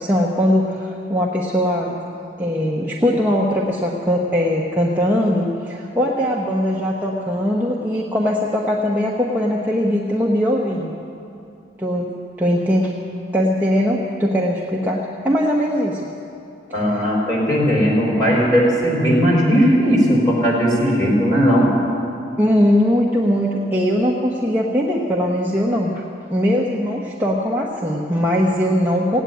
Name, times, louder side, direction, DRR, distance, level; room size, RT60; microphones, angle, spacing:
voice 1, 0.0-2.0 2.4-10.9 11.8-12.9 13.3-16.1 17.0-17.1 22.4-26.0 26.3-29.2, equal, 10° right, -4 dB, 1.0 m, -20 dB
voice 2, 16.7-21.7, equal, 20° left, -4 dB, 4.4 m, -17 dB
17.0 x 9.0 x 9.3 m, 2.6 s
head